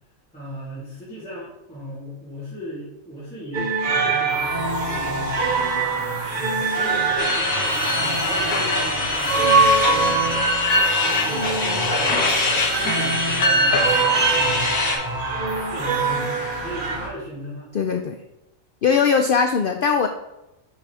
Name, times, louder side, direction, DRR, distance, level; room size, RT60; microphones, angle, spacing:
voice 1, 0.3-5.6 6.3-10.4 10.9-12.3 12.7-15.0 15.7-16.3 16.6-17.7, equal, 5° left, -12 dB, 2.6 m, -36 dB
sound 1, 3.5-17.0, right 4 dB, 50° right, 0.7 m, -24 dB
sound 2, 4.3-17.1, equal, 30° left, 1.7 m, -32 dB
sound 3, 7.2-15.0, left 2 dB, 85° left, 1.7 m, -22 dB
voice 2, 17.7-18.1 18.8-20.1, left 6 dB, 65° left, 6 dB, 0.5 m, -20 dB
6.3 x 6.1 x 3.4 m, 0.92 s
omnidirectional pair, 1.4 m